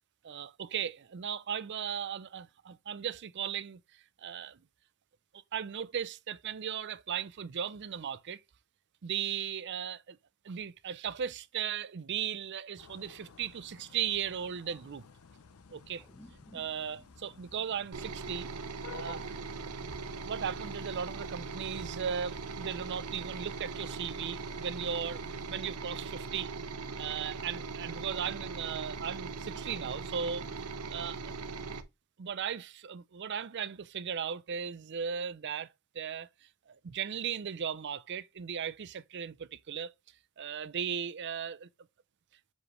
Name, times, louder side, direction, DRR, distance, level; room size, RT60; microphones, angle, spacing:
voice 1, 0.2-3.8 4.2-4.6 5.5-8.4 9.0-10.2 10.4-15.0 15.7-16.0 16.5-18.5 18.9-19.3 20.2-26.5 27.0-31.3 32.2-35.7 35.9-36.3 36.7-39.9 40.4-41.7, right 7 dB, 50° right, 0.5 m, -37 dB
sound 1, 12.8-25.6, left 6 dB, 75° left, 0.6 m, -54 dB
sound 2, 16.0-20.7, equal, 10° left, 0.8 m, -60 dB
sound 3, 17.9-31.8, right 4 dB, 85° right, 0.8 m, -40 dB
7.3 x 4.9 x 3.0 m
head